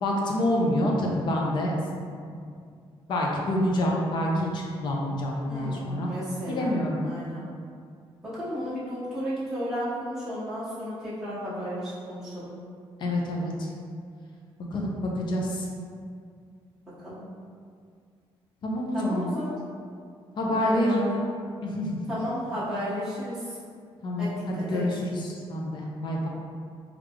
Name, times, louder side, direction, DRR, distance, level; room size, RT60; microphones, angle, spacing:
voice 1, 0.0-1.7 2.3-2.5 3.1-6.1 6.5-7.0 13.0-13.7 14.7-15.7 18.6-19.3 20.4-21.1 21.6-22.0 24.0-26.3, left 1 dB, 50° left, -1 dB, 0.5 m, -27 dB
voice 2, 5.5-6.7 7.0-7.4 8.2-12.5 17.0-17.2 18.9-19.5 20.5-21.2 22.1-23.5 24.2-24.8, equal, 5° right, -13 dB, 0.9 m, -33 dB
3.2 x 2.3 x 3.4 m, 2.2 s
cardioid pair, 175°, 10 cm